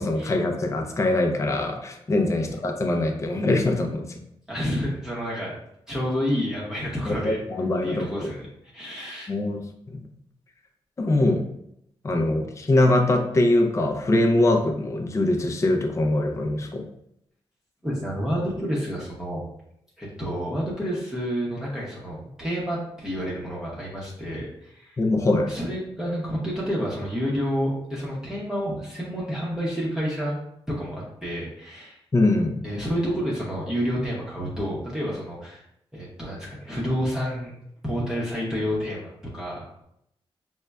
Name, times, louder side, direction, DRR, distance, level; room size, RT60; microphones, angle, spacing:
voice 1, 0.0-4.2 7.1-8.3 9.3-10.0 11.0-11.5 12.0-16.8 25.0-25.5 32.1-32.6, left 2 dB, 30° left, 3 dB, 0.5 m, -23 dB
voice 2, 4.5-5.5 5.9-7.4 7.8-8.5 8.7-9.3 17.8-19.4 20.0-25.0 25.5-30.4 30.8-32.0 32.6-35.6 35.9-37.5 37.8-39.8, equal, 5° right, -6 dB, 0.8 m, -29 dB
5.2 x 2.1 x 2.3 m, 0.77 s
cardioid pair, 105°, 10 cm